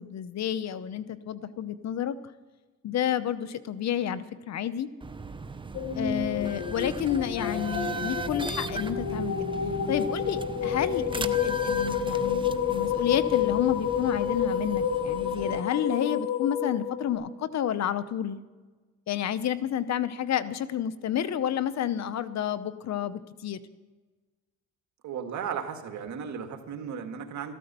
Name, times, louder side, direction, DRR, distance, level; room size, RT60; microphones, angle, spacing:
voice 1, 0.0-2.2 2.8-4.9 5.9-9.5 9.9-18.4 19.1-23.6, left 10 dB, 60° left, 14 dB, 0.9 m, -30 dB
sound 1, 5.0-15.6, right 3 dB, 15° right, 0.7 m, -38 dB
sound 2, 5.7-17.1, left 8 dB, 85° left, 2.7 m, -29 dB
voice 2, 25.0-27.5, right 7 dB, 70° right, 5 dB, 1.9 m, -35 dB
14.0 x 13.0 x 6.8 m, 1.3 s
cardioid pair, 90°, 30 cm